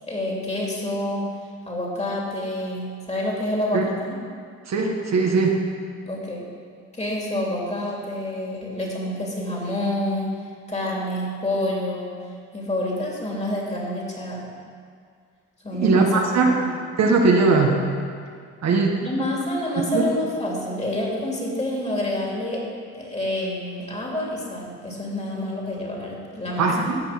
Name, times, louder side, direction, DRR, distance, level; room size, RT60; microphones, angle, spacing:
voice 1, 0.1-1.2 1.6-4.1 6.0-6.4 6.9-10.3 10.7-12.1 12.5-14.4 15.6-16.1 16.6-16.7 19.0-22.6 22.9-26.7, left 1 dB, 20° left, -3 dB, 3.0 m, -28 dB
voice 2, 4.7-5.6 15.7-16.5 17.0-17.8 18.6-19.0 19.9-20.0 26.6-27.0, right 4 dB, 60° right, 1 dB, 1.4 m, -19 dB
15.0 x 5.3 x 6.0 m, 2.1 s
cardioid pair, 90°, 30 cm